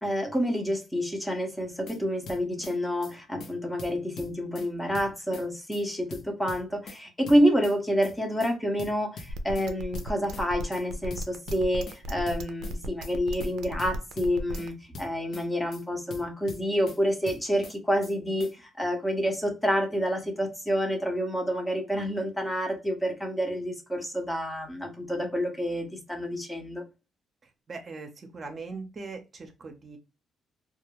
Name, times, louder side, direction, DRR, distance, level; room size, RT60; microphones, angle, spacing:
voice 1, 0.0-26.8, equal, 10° left, 0.7 m, -28 dB
sound 1, 1.6-2.0 2.3-2.7 3.0-3.1 3.4-3.5 3.8-4.7 4.9-5.4 5.7-5.8 6.1-7.0 7.3-7.7 8.0-8.1 8.4-8.5 8.8-9.7 9.9-10.4 10.7-10.8 11.1-12.0 12.3-12.7 13.0-13.1 13.4-13.5 13.8-14.7 14.9-15.4 15.7-15.8 16.1-17.0 17.3-17.7 18.0-18.1 18.4-18.5, left 3 dB, 65° left, 0.7 m, -43 dB
sound 2, 9.3-14.7, equal, 85° right, 0.4 m, -35 dB
voice 2, 27.4-30.0, right 4 dB, 40° right, 0.6 m, -41 dB
2.3 x 2.2 x 2.9 m
cardioid pair, 90°, 0 cm